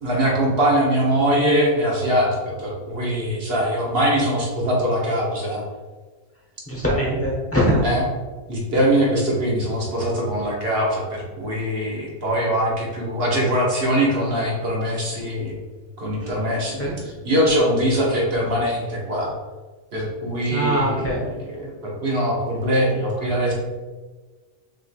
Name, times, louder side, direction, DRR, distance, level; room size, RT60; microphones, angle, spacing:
voice 1, 0.0-5.6 7.8-8.0 8.5-15.6 16.0-19.3 19.9-23.5, equal, 45° right, -3 dB, 1.2 m, -22 dB
voice 2, 6.7-7.8 16.2-16.3 16.8-17.1 20.5-21.2, equal, 10° left, -4 dB, 0.9 m, -22 dB
5.7 x 3.3 x 2.2 m, 1.3 s
omnidirectional pair, 1.5 m